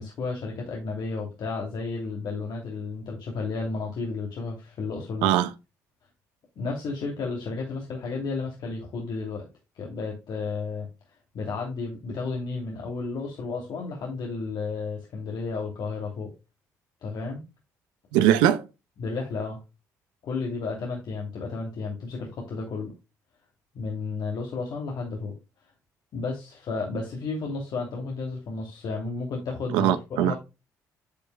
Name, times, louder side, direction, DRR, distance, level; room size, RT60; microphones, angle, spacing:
voice 1, 0.0-5.3 6.6-9.5 9.7-10.9 11.3-16.3 17.0-17.4 19.0-19.6 20.2-22.9 23.7-25.3 26.1-30.4, left 4 dB, 60° left, 2.8 m, -32 dB
voice 2, 18.1-18.7 29.7-30.3, right 12 dB, 80° right, 0.8 m, -21 dB
10.5 x 7.6 x 2.2 m
hypercardioid pair, 55°, 8 cm